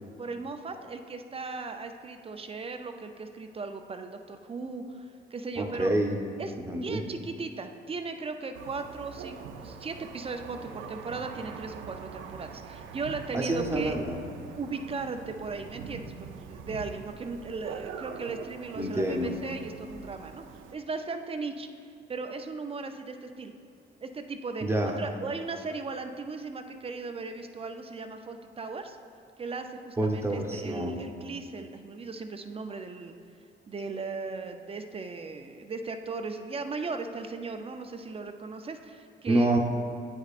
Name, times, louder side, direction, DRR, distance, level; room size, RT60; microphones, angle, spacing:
voice 1, 0.2-5.9 6.4-6.5 6.8-14.0 14.6-16.1 16.4-20.4 20.7-21.7 22.1-23.5 24.0-29.0 29.4-33.1 33.7-39.5, right 4 dB, 30° right, 6 dB, 0.4 m, -37 dB
voice 2, 5.6-6.2 6.6-7.0 13.3-14.3 18.7-19.3 24.6-24.9 30.0-31.0 39.3-39.6, right 1 dB, 15° right, 0 dB, 0.8 m, -27 dB
Thunder, 8.5-20.7, right 6 dB, 85° right, 0.5 m, -43 dB
9.3 x 5.0 x 2.4 m, 2.5 s
cardioid pair, 90°, 20 cm